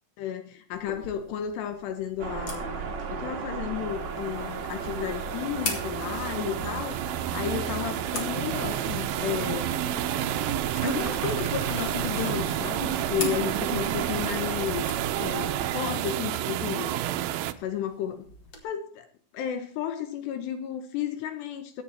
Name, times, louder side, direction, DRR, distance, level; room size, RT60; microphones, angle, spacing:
voice 1, 0.2-9.7 10.8-14.9 15.1-17.0 17.6-18.3 18.6-19.1 19.3-21.8, left 9 dB, 75° left, 3.1 m, -33 dB
sound 1, 0.7-18.6, left 2 dB, 35° left, 2.2 m, -43 dB
sound 2, 2.2-15.7, right 6 dB, 50° right, 2.5 m, -35 dB
sound 3, 4.2-17.5, right 13 dB, 80° right, 2.1 m, -31 dB
15.5 x 9.2 x 4.4 m
omnidirectional pair, 5.0 m